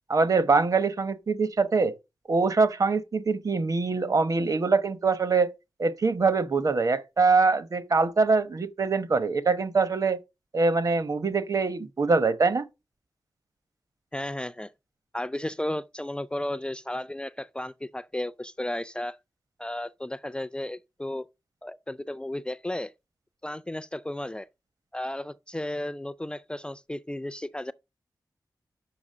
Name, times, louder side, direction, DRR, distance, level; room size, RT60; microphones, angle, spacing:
voice 1, 0.1-1.9 2.3-5.5 5.8-10.2 10.5-12.7, right 4 dB, 50° right, 1.0 m, -24 dB
voice 2, 14.1-14.7 15.1-19.2 19.6-21.3 21.6-22.9 23.4-24.5 24.9-27.7, left 1 dB, 10° left, 0.4 m, -34 dB
6.1 x 5.7 x 6.4 m
wide cardioid pair, 110°, 7 cm